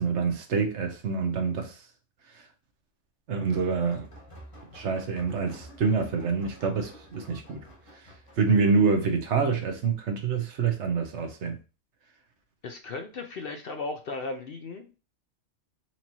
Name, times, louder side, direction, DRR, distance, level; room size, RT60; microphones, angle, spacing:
voice 1, 0.0-1.8 2.3-2.4 3.3-4.1 4.7-7.6 8.4-11.6, right 5 dB, 70° right, 1.0 m, -26 dB
sound 1, 3.5-8.6, equal, 25° left, 1.3 m, -49 dB
voice 2, 12.6-14.9, left 3 dB, 60° left, 0.7 m, -36 dB
4.4 x 2.8 x 2.8 m
omnidirectional pair, 1.3 m